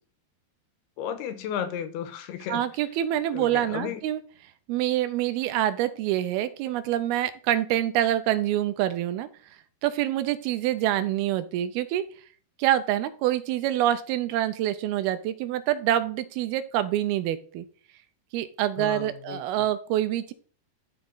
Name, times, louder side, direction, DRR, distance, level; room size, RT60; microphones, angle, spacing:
voice 1, 1.0-2.6 3.3-4.0 18.8-19.4, left 9 dB, 85° left, 10 dB, 2.9 m, -33 dB
voice 2, 2.5-4.2 4.7-9.3 9.8-12.0 12.6-17.7 18.3-20.3, right 12 dB, 85° right, 12 dB, 2.5 m, -26 dB
12.5 x 4.8 x 3.9 m, 0.43 s
omnidirectional pair, 4.5 m